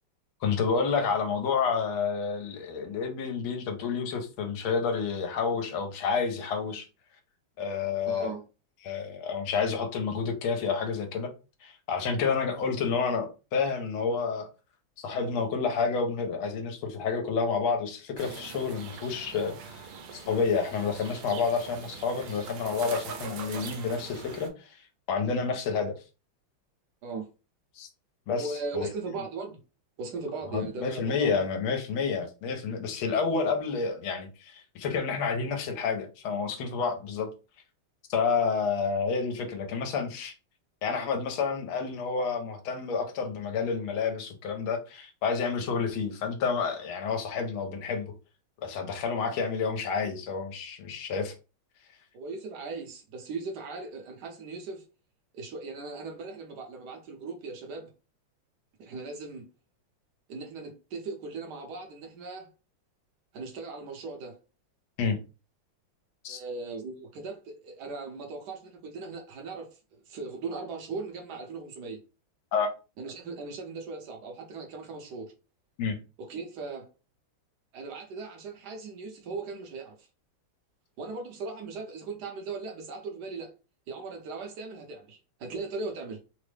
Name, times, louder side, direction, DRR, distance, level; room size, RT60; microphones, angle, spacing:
voice 1, 0.4-6.9 7.6-8.3 8.8-11.3 11.6-14.5 15.0-19.8 20.1-26.0 27.8-27.9 28.3-28.5 28.7-28.9 30.5-37.3 38.1-40.3 40.8-48.1 48.6-51.3 65.0-65.2 66.2-66.4 72.5-72.7 75.8-76.0, left 5 dB, 85° left, 1.5 m, -29 dB
voice 2, 8.1-8.4 27.0-27.3 28.4-29.6 30.0-31.5 52.1-54.8 55.3-57.9 58.8-59.4 60.3-62.5 63.3-64.4 66.3-72.0 73.0-75.3 76.2-76.9 77.7-80.1 81.0-83.5 83.9-86.2, right 3 dB, 60° right, 1.2 m, -38 dB
sound 1, 18.2-24.5, right 5 dB, 80° right, 1.5 m, -42 dB
3.7 x 2.0 x 3.2 m
omnidirectional pair, 2.3 m